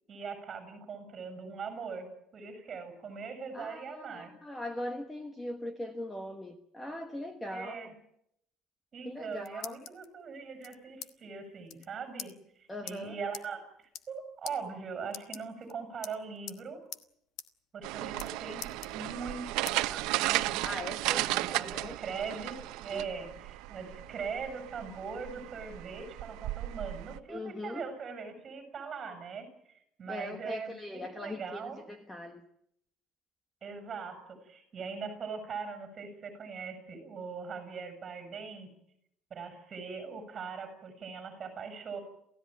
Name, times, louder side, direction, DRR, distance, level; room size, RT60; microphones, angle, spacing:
voice 1, 0.1-2.1 2.3-4.3 7.5-7.9 8.9-12.3 12.6-16.8 17.7-20.6 21.1-29.5 30.0-31.8 33.6-38.7 39.3-42.0, right 5 dB, 25° right, 8 dB, 7.4 m, -41 dB
voice 2, 3.5-7.8 9.0-9.8 12.7-13.2 20.6-22.0 22.9-23.1 27.3-27.8 30.1-32.4, left 1 dB, 10° left, 7 dB, 1.3 m, -40 dB
sound 1, 9.0-10.1 10.6-11.1 11.4-11.5 11.7-11.9 12.2-12.3 12.9-13.0 13.3-13.5 13.8-14.2 14.5-14.6 15.1-15.7 16.0-16.6 16.9-17.1 17.4-17.5 17.8-18.3 18.6-19.3 19.7-19.8 20.3-21.2, left 11 dB, 55° left, 1.2 m, -44 dB
sound 2, 17.8-27.2, right 18 dB, 75° right, 0.9 m, -35 dB
28.0 x 16.0 x 9.2 m, 0.76 s
cardioid pair, 165°, 0 cm